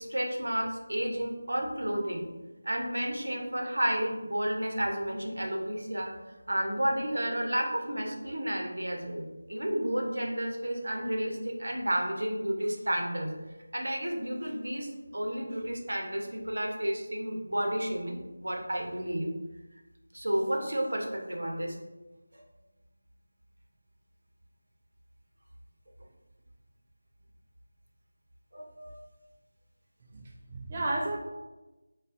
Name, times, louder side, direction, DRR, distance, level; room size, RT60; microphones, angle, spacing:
voice 1, 0.0-2.3 2.6-6.1 6.5-13.3 13.7-19.3 20.1-21.8 22.3-22.4 28.5-29.0, right 1 dB, 75° right, 1 dB, 0.8 m, -31 dB
voice 2, 30.0-31.2, right 2 dB, 30° right, -3 dB, 0.4 m, -33 dB
6.0 x 2.3 x 2.5 m, 1.1 s
figure-of-eight pair, 170°, 0 cm